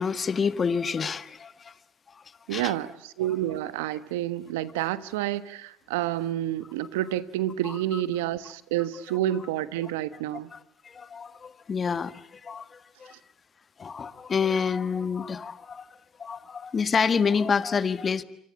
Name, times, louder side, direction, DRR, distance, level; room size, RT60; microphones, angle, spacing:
voice 1, 0.0-1.7 2.5-2.7 7.6-7.7 10.5-10.6 10.8-13.1 13.8-15.9 16.2-18.2, left 6 dB, 35° left, 13 dB, 1.7 m, -28 dB
voice 2, 2.5-10.5, right 13 dB, 85° right, 15 dB, 1.2 m, -29 dB
28.0 x 24.5 x 8.6 m, 0.70 s
supercardioid pair, 75°, 0 cm